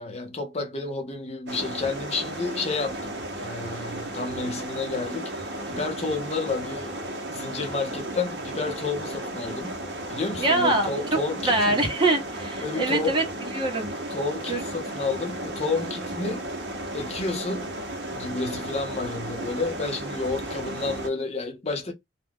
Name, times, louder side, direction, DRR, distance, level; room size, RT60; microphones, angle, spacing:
voice 1, 0.0-7.0 7.3-9.8 10.1-11.8 12.6-13.2 14.1-16.5 16.9-17.7 18.1-21.9, left 3 dB, 35° left, 0.7 m, -30 dB
sound 1, 1.5-21.1, right 1 dB, 70° right, 0.8 m, -34 dB
voice 2, 10.4-13.9 14.5-14.6, right 2 dB, 30° right, 0.9 m, -24 dB
2.3 x 2.2 x 3.4 m
head